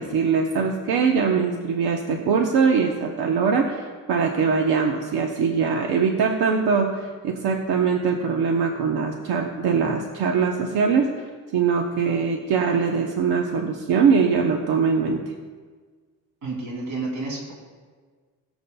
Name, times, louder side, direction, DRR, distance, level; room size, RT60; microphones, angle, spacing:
voice 1, 0.0-11.1 11.5-15.2, right 5 dB, 90° right, 2 dB, 1.0 m, -22 dB
voice 2, 16.4-17.5, right 3 dB, 55° right, -2 dB, 3.1 m, -30 dB
21.0 x 7.2 x 2.3 m, 1.5 s
cardioid pair, 165°, 37 cm